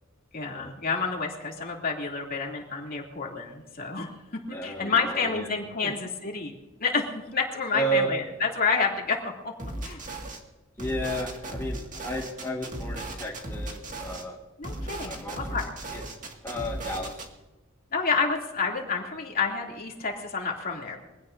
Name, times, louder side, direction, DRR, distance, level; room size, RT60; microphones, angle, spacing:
voice 1, 0.3-4.1 4.5-6.5 6.8-9.5 9.8-10.0 14.6-15.7 17.9-21.0, left 5 dB, 45° left, 0 dB, 2.9 m, -29 dB
voice 2, 4.5-5.5 5.8-5.9 7.7-8.1 10.8-14.4 15.0-15.6 15.9-16.0 16.4-17.3, right 2 dB, 15° left, -3 dB, 1.6 m, -32 dB
sound 1, 9.6-10.4 10.8-14.2 14.6-17.3, right 1 dB, 40° right, 2.1 m, -36 dB
24.0 x 16.5 x 2.7 m, 1.1 s
head